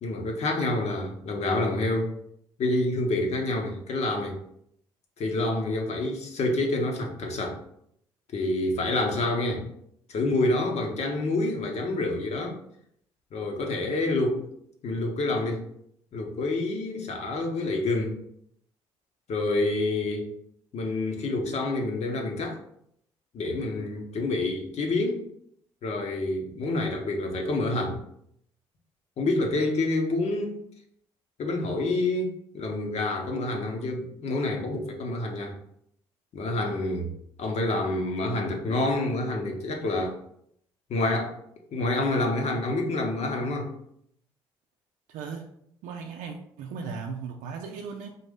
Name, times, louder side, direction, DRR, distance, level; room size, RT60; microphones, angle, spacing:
voice 1, 0.0-2.1 2.6-4.4 5.2-7.6 8.3-9.6 10.1-12.6 13.3-14.5 14.8-15.6 16.1-18.2 19.3-20.3 20.7-22.6 23.3-25.2 25.8-28.0 29.2-30.5 31.4-35.5 36.3-37.1 37.4-40.1 40.9-41.4 41.7-43.7, left 2 dB, 55° left, 2 dB, 1.0 m, -27 dB
voice 2, 45.1-45.5 45.8-48.2, right 5 dB, 70° right, 2 dB, 0.5 m, -37 dB
3.9 x 2.6 x 3.6 m, 0.71 s
hypercardioid pair, 55°, 14 cm